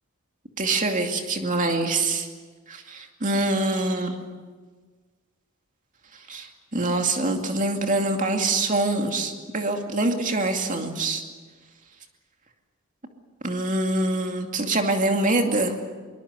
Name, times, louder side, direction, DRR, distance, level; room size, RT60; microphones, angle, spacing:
voice 1, 0.6-2.3 2.7-4.2 6.3-11.2 13.4-15.8, right 2 dB, 35° right, 4 dB, 2.5 m, -25 dB
23.0 x 20.5 x 8.3 m, 1.4 s
head